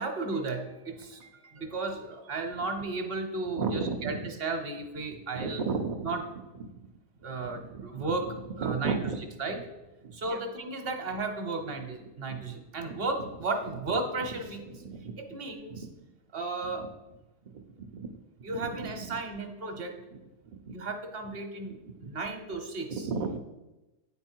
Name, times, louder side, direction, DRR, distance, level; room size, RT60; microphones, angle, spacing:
voice 1, 0.0-4.1 4.4-5.6 6.0-6.2 7.2-8.2 8.6-9.0 9.4-9.6 10.1-14.7 15.2-15.8 16.3-16.8 18.4-19.9 20.7-21.7 22.0-23.0, right 3 dB, 45° right, 5 dB, 1.0 m, -34 dB
voice 2, 3.5-4.3 5.3-6.2 6.6-6.9 7.2-8.2 8.6-9.2 10.0-10.4 12.3-12.5 12.8-13.0 14.6-15.4 15.7-15.9 16.6-16.9 17.4-18.2 18.5-19.2 20.1-20.2 20.5-20.8 21.7-22.1 22.9-23.4, right 5 dB, 65° right, 4 dB, 0.4 m, -35 dB
9.2 x 3.9 x 4.5 m, 1.0 s
omnidirectional pair, 1.5 m